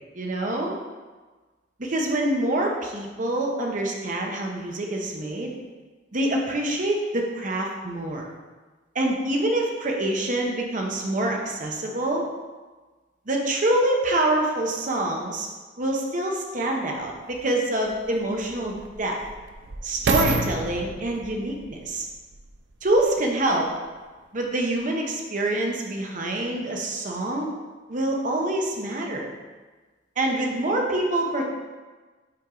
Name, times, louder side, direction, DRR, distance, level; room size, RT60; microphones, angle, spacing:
voice 1, 0.1-0.8 1.8-5.6 6.1-8.3 8.9-12.2 13.3-15.5 15.8-19.2 19.8-22.1 22.8-23.7 24.3-27.5 27.9-29.3 30.2-31.5, right 1 dB, 45° right, 1 dB, 0.8 m, -26 dB
sound 1, 17.0-17.1 17.9-23.2 23.8-23.9, right 3 dB, 65° right, 0.5 m, -30 dB
5.7 x 4.5 x 3.8 m, 1.3 s
head